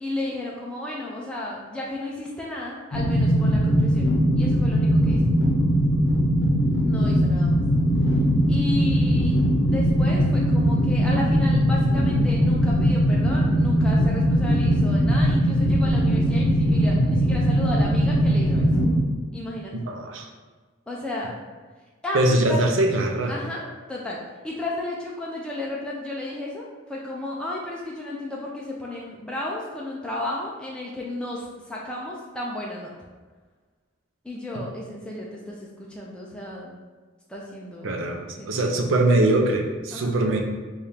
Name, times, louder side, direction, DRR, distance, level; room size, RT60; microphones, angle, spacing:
voice 1, 0.0-5.2 6.8-7.6 8.5-9.4 9.7-18.7 19.3-19.7 20.9-21.4 22.0-22.6 23.3-23.6 23.9-24.2 24.4-32.9 34.2-36.8 37.3-38.0 38.4-38.8 39.9-40.1, left 1 dB, 5° left, -4 dB, 0.4 m, -33 dB
sound 1, 2.9-19.0, equal, 70° left, 0.7 m, -20 dB
voice 2, 19.9-20.3 22.1-23.4 37.8-40.4, right 1 dB, 75° right, 2 dB, 0.5 m, -22 dB
3.4 x 2.4 x 4.2 m, 1.4 s
head